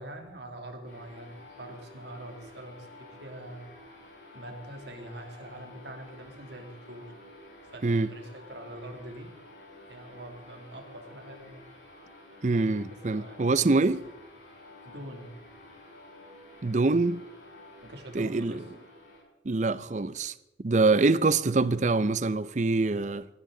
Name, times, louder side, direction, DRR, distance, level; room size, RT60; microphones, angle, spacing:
voice 1, 0.0-3.7 4.3-7.1 7.7-9.3 9.9-11.6 13.1-13.5 14.8-15.3 17.8-18.7, right 1 dB, 65° right, 2.6 m, -44 dB
sound 1, 0.8-19.2, left 2 dB, 65° left, 7.2 m, -51 dB
voice 2, 12.4-14.1 16.6-17.3 18.1-18.6 19.4-20.3 20.6-23.3, right 3 dB, 40° right, 0.5 m, -25 dB
19.0 x 15.0 x 3.9 m
head